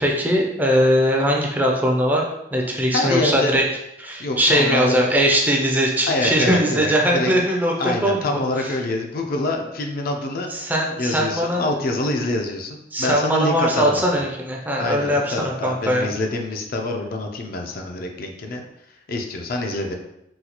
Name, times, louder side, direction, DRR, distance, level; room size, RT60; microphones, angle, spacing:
voice 1, 0.0-3.6 4.0-8.3 8.6-8.7 10.5-11.7 12.9-16.1, equal, 10° right, -1 dB, 0.4 m, -20 dB
voice 2, 2.9-3.6 4.2-5.0 6.1-7.3 7.8-10.7 11.0-14.0 14.8-18.6 19.1-20.0, left 2 dB, 55° left, 3 dB, 0.4 m, -25 dB
4.0 x 2.3 x 2.9 m, 0.82 s
head